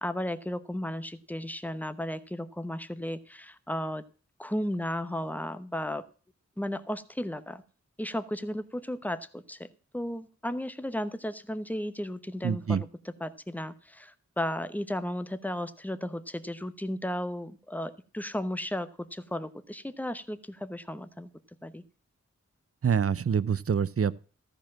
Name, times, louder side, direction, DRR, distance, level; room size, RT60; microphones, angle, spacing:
voice 1, 0.0-4.0 4.4-6.1 6.6-7.6 8.0-9.7 9.9-12.9 13.2-21.3 21.6-21.8, left 1 dB, 5° left, 0.9 m, -34 dB
voice 2, 12.4-12.8 22.8-24.1, right 7 dB, 50° right, 0.6 m, -26 dB
14.0 x 5.2 x 7.3 m
cardioid pair, 45°, 30 cm